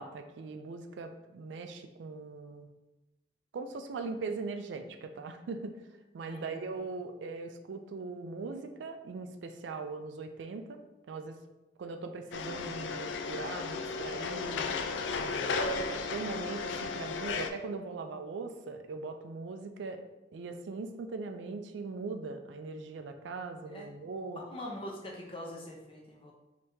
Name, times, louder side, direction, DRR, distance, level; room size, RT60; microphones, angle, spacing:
voice 1, 0.0-2.7 3.5-5.8 6.1-10.8 11.1-11.4 11.8-14.6 15.1-20.0 20.3-24.4, right 4 dB, 85° right, 6 dB, 0.4 m, -40 dB
voice 2, 6.2-6.6 23.7-23.9 24.4-26.3, left 1 dB, 30° left, -1 dB, 0.6 m, -43 dB
sound 1, 12.3-17.5, left 4 dB, 80° left, 0.3 m, -34 dB
3.4 x 2.8 x 2.7 m, 1.0 s
head